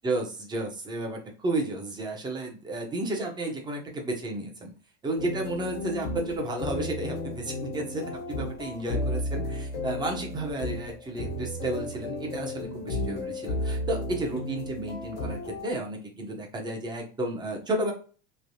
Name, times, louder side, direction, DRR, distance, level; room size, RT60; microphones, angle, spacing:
voice 1, 0.0-4.7 5.0-17.9, right 2 dB, 15° right, 1 dB, 0.8 m, -32 dB
sound 1, 5.2-15.7, left 1 dB, 80° left, 1.4 m, -33 dB
3.3 x 2.7 x 2.7 m, 0.38 s
supercardioid pair, 140°, 30 cm